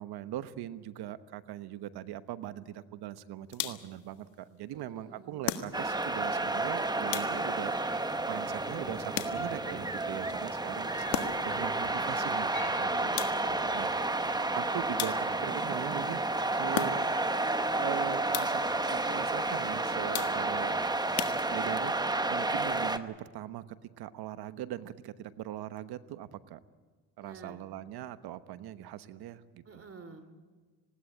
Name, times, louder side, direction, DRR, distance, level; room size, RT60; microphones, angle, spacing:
voice 1, 0.0-7.7 8.0-14.2 14.5-16.2 16.5-17.1 17.8-20.9 21.5-21.9 22.3-23.7 24.0-26.6 27.2-29.8, right 12 dB, 70° right, 12 dB, 1.2 m, -40 dB
sound 1, 3.5-4.0 5.4-6.1 7.1-7.7 9.1-9.7 11.1-11.6 13.2-13.7 15.0-15.6 16.7-17.3 18.3-18.8 20.1-20.7 21.2-21.9, left 12 dB, 80° left, 1.6 m, -37 dB
voice 2, 4.7-5.4 12.8-13.7 20.1-20.4 27.2-27.6 29.7-30.3, right 3 dB, 35° right, 11 dB, 2.6 m, -50 dB
sound 2, 5.7-23.0, right 2 dB, 10° right, 1.0 m, -31 dB
sound 3, 7.6-14.4, left 4 dB, 30° left, 4.0 m, -51 dB
20.0 x 17.0 x 8.8 m, 1.4 s
cardioid pair, 90°, 41 cm